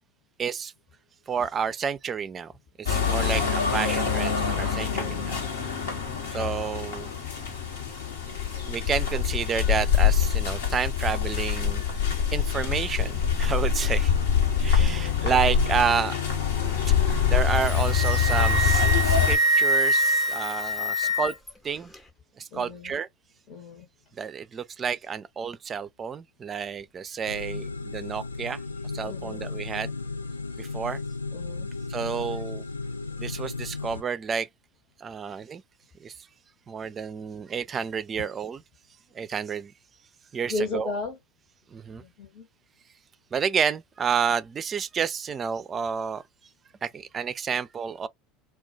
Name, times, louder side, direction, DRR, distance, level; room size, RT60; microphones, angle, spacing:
voice 1, 0.4-0.7 1.3-2.5 2.8-5.4 6.3-7.1 8.6-11.9 12.3-14.1 14.6-16.1 17.3-21.4 21.6-21.9 22.4-23.1 24.2-28.6 28.9-29.9 30.6-31.0 31.9-32.6 33.2-34.5 35.0-35.6 36.0-36.1 36.7-38.6 39.1-39.7 40.3-40.9 41.7-42.0 43.3-46.2 46.8-48.1, right 7 dB, 30° right, 0.4 m, -30 dB
sound 1, 2.9-19.4, left 7 dB, 70° left, 1.1 m, -25 dB
voice 2, 4.8-5.5 14.7-15.3 22.5-23.0 23.5-23.9 29.0-29.5 31.3-31.7 38.1-38.2 40.5-41.2 42.0-42.5, left 3 dB, 45° left, 1.0 m, -36 dB
Wind instrument woodwind instrument, 17.5-21.5, right 1 dB, 15° left, 0.8 m, -24 dB
sound 2, 27.3-34.0, left 3 dB, 90° left, 0.3 m, -35 dB
2.3 x 2.2 x 3.8 m
figure-of-eight pair, 75°, 0 cm